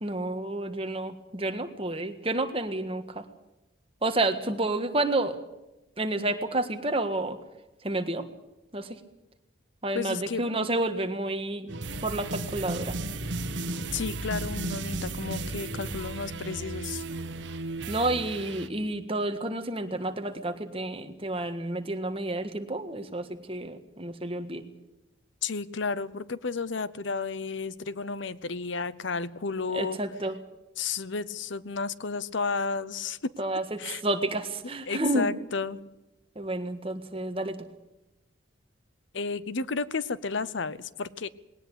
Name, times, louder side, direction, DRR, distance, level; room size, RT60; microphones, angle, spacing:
voice 1, 0.0-3.2 4.0-5.4 6.0-7.4 7.8-8.2 8.7-9.0 9.8-11.7 12.0-13.0 17.9-24.6 29.7-30.4 33.4-35.3 36.4-37.6, right 2 dB, 30° right, 7 dB, 1.6 m, -30 dB
voice 2, 9.9-10.4 13.9-17.0 25.4-30.0 30.8-33.3 33.8-34.0 34.9-35.8 39.1-41.3, left 4 dB, 65° left, 18 dB, 0.8 m, -32 dB
sound 1, 11.7-18.7, right 2 dB, 60° right, 1.4 m, -34 dB
20.0 x 18.5 x 8.3 m, 0.97 s
head